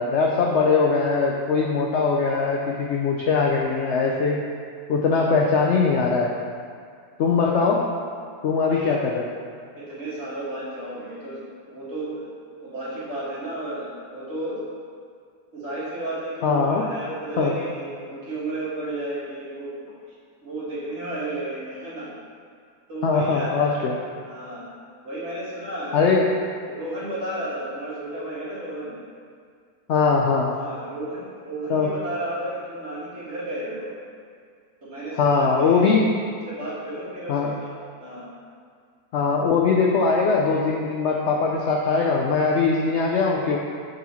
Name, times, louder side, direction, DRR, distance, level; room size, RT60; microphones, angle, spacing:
voice 1, 0.0-4.4 4.9-6.3 7.2-7.9 8.4-9.2 16.4-16.8 17.4-17.5 23.0-23.9 25.9-26.3 29.9-30.5 31.7-31.9 35.2-36.1 37.3-37.5 39.1-43.6, left 4 dB, 70° left, -1 dB, 0.7 m, -21 dB
voice 2, 8.6-9.0 9.8-11.4 11.7-12.3 12.6-14.6 15.5-19.9 20.4-22.1 22.9-24.6 25.0-26.2 26.5-28.9 30.5-33.9 34.8-35.9 36.3-37.7 38.0-38.3 41.9-42.0, right 1 dB, 45° right, -8 dB, 1.8 m, -33 dB
6.2 x 4.1 x 4.1 m, 2.1 s
omnidirectional pair, 1.7 m